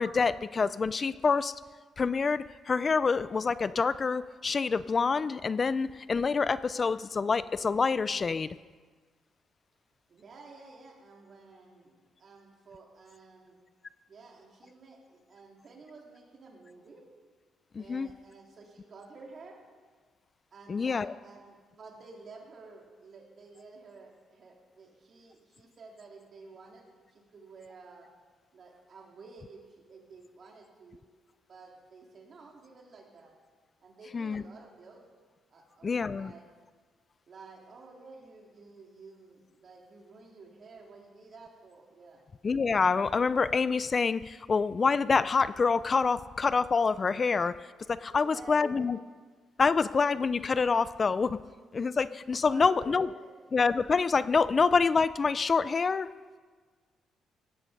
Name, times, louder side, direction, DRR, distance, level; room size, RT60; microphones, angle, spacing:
voice 1, 0.0-1.5 2.0-8.5 17.8-18.1 20.7-21.1 34.1-34.4 35.8-36.3 42.4-47.5 47.9-49.0 49.6-51.4 51.7-53.1 53.5-56.1, left 5 dB, 35° left, 16 dB, 0.4 m, -26 dB
voice 2, 10.1-13.6 14.1-17.0 17.8-19.6 20.5-28.1 28.5-31.0 31.5-33.3 33.8-35.1 35.5-36.5 37.3-42.2 48.1-48.9 52.4-53.4, right 3 dB, 50° right, -1 dB, 3.7 m, -52 dB
17.5 x 14.0 x 5.3 m, 1.5 s
cardioid pair, 90°, 0 cm